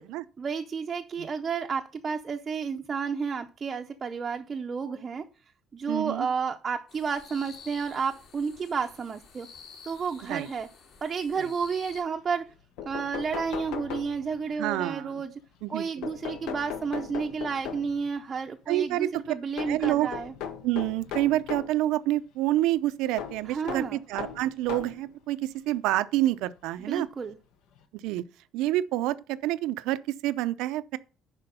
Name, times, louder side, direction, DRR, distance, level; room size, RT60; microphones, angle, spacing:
voice 1, 0.4-5.2 5.7-9.5 9.9-10.7 11.0-12.5 12.8-15.3 15.7-20.3 23.5-24.0 26.9-27.4, right 5 dB, 25° right, 0.6 m, -31 dB
voice 2, 5.9-6.3 10.3-10.5 11.4-11.5 14.6-15.2 15.6-15.8 18.7-19.1 19.7-20.1 20.6-27.1 28.0-28.2 28.5-31.0, right 15 dB, 85° right, 0.5 m, -28 dB
sound 1, 6.9-12.0, left 5 dB, 60° left, 2.5 m, -50 dB
sound 2, 12.5-12.6 12.8-14.5 16.0-18.1 19.6-21.8 23.2-25.1 25.9-26.0 27.3-27.4 27.8-27.9, left 8 dB, 80° left, 1.2 m, -38 dB
11.0 x 4.5 x 5.5 m
cardioid pair, 175°, 0 cm